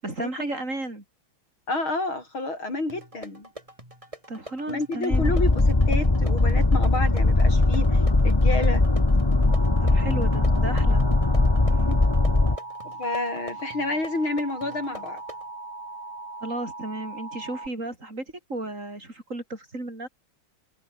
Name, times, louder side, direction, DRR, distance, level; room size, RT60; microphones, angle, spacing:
voice 1, 0.0-1.0 4.3-5.3 9.8-11.1 11.9-12.0 16.4-20.1, right 2 dB, 35° right, 6.5 m, -34 dB
voice 2, 1.7-3.5 4.7-8.8 12.8-15.2, left 2 dB, 75° left, 8.7 m, -29 dB
sound 1, 2.9-15.5, right 1 dB, 15° right, 7.4 m, -45 dB
sound 2, 5.1-12.6, left 2 dB, 15° left, 1.2 m, -20 dB
Alarm, 9.5-17.7, right 2 dB, 60° right, 7.1 m, -39 dB
omnidirectional pair, 2.2 m